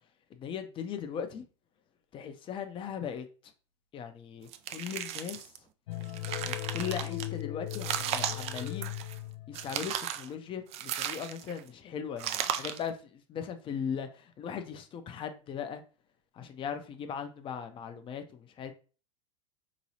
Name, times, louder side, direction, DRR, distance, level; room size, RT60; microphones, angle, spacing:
voice 1, 0.4-1.4 2.1-3.3 3.9-5.4 6.5-8.9 9.5-13.0 13.3-14.1 14.4-15.8 16.4-18.7, left 7 dB, 30° left, 0.6 m, -38 dB
sound 1, 4.5-5.6 6.0-7.3 7.7-9.2 9.5-10.3 10.7-11.6 12.2-12.9, right 10 dB, 40° right, 0.4 m, -35 dB
sound 2, 5.9-10.0, left 16 dB, 75° left, 0.4 m, -38 dB
3.8 x 3.0 x 2.7 m
hypercardioid pair, 105°, 16 cm